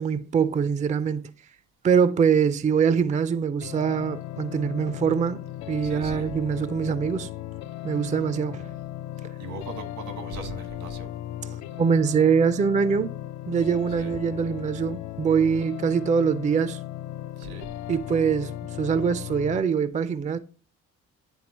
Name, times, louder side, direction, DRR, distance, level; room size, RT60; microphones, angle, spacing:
voice 1, 0.0-1.3 1.8-5.4 5.7-7.3 7.8-8.7 11.8-13.1 13.5-16.8 17.9-20.4, right 6 dB, 25° right, 0.4 m, -23 dB
sound 1, 3.6-19.6, left 13 dB, 65° left, 0.5 m, -37 dB
voice 2, 5.8-6.3 9.4-11.1 13.9-14.1 17.4-17.7, right 3 dB, 85° right, 1.7 m, -38 dB
9.9 x 3.8 x 2.9 m
cardioid pair, 90°, 30 cm